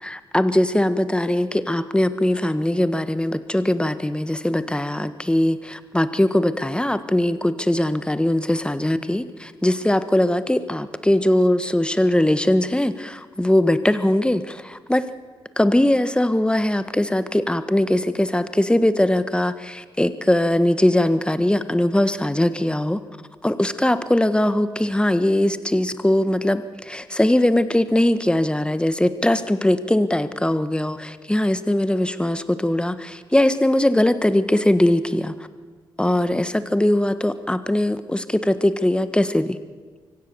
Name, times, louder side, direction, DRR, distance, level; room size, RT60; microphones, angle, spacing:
voice 1, 0.0-15.1 15.6-23.0 23.4-35.3 36.0-39.6, left 1 dB, 10° left, 12 dB, 1.5 m, -20 dB
24.5 x 16.0 x 7.0 m, 1.5 s
supercardioid pair, 45°, 10 cm